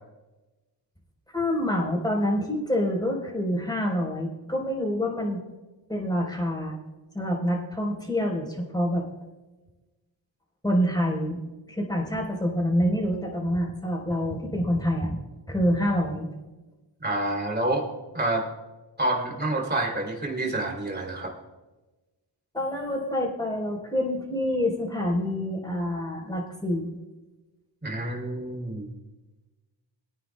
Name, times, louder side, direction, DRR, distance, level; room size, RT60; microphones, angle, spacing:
voice 1, 1.3-5.4 5.9-6.8 7.1-9.0 10.6-11.4 11.7-15.2 15.5-16.3 22.5-26.9, equal, 10° left, -2 dB, 4.1 m, -27 dB
voice 2, 17.0-17.8 18.1-18.4 19.0-21.3 27.8-28.9, right 2 dB, 20° right, 0 dB, 3.1 m, -28 dB
23.0 x 9.7 x 2.3 m, 1.1 s
cardioid pair, 70°, 47 cm